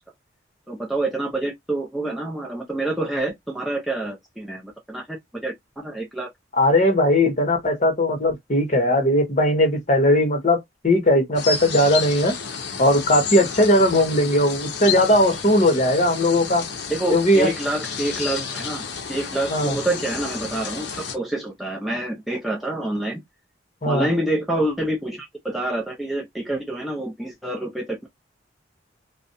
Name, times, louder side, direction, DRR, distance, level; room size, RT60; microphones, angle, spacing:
voice 1, 0.7-6.3 16.9-18.8 19.1-23.2 23.8-28.1, right 1 dB, ahead, 0.4 m, -27 dB
voice 2, 6.6-12.3 12.8-16.6 17.1-17.5 19.5-19.8 23.8-24.1, left 1 dB, 40° left, 0.9 m, -18 dB
sound 1, 11.3-21.2, left 6 dB, 65° left, 0.6 m, -31 dB
2.5 x 2.1 x 2.6 m
head